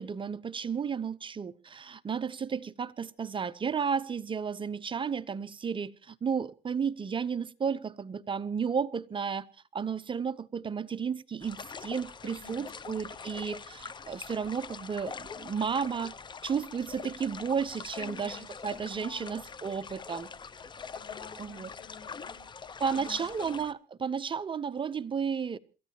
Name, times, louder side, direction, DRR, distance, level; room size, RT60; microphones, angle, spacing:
voice 1, 0.0-9.5 9.7-16.1 16.4-20.3 21.4-21.7 22.8-25.6, right 6 dB, 30° right, 0.7 m, -33 dB
sound 1, 11.4-23.7, left 5 dB, 25° left, 0.7 m, -44 dB
voice 2, 12.2-13.0 17.9-19.4 20.8-22.4 22.8-23.5, left 6 dB, 80° left, 7.3 m, -49 dB
27.5 x 14.5 x 2.9 m
cardioid pair, 110°, 17 cm